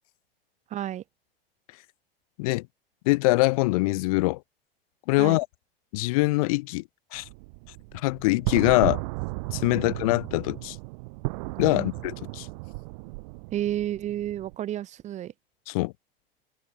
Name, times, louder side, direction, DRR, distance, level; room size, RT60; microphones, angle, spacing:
voice 1, 0.7-1.0 5.2-5.4 9.7-9.9 11.7-11.9 13.5-15.3, right 12 dB, 25° right, 1.2 m, -31 dB
voice 2, 3.0-4.4 5.1-5.5 5.9-6.8 7.1-7.3 7.9-9.0 9.5-10.8 11.6-12.5 15.7-15.9, left 23 dB, 40° left, 0.5 m, -23 dB
sound 1, 7.1-14.6, right 27 dB, 45° right, 1.5 m, -35 dB
figure-of-eight pair, 90°, 30 cm